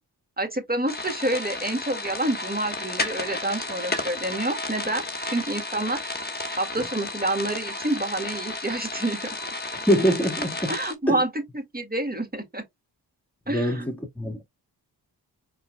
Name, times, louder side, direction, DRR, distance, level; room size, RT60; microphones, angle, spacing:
voice 1, 0.4-6.0 6.6-9.2 10.7-12.6 13.5-13.8, right 1 dB, 20° right, 1.9 m, -28 dB
sound 1, 0.9-10.9, left 2 dB, 20° left, 1.3 m, -32 dB
voice 2, 9.9-10.7 11.1-11.2 13.5-14.5, equal, 5° left, 1.7 m, -24 dB
4.7 x 4.5 x 2.2 m
cardioid pair, 50°, 43 cm